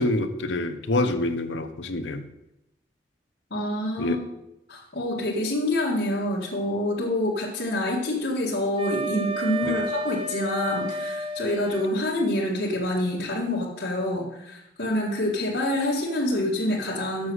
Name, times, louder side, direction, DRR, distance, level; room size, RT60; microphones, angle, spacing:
voice 1, 0.0-2.3 4.0-4.2 9.6-9.8, left 2 dB, 90° left, 8 dB, 0.8 m, -26 dB
voice 2, 3.5-4.2 4.7-17.3, left 1 dB, 70° left, -5 dB, 1.9 m, -27 dB
Wind instrument woodwind instrument, 8.8-11.9, right 1 dB, 30° right, 0.7 m, -31 dB
7.5 x 6.2 x 6.1 m, 0.87 s
head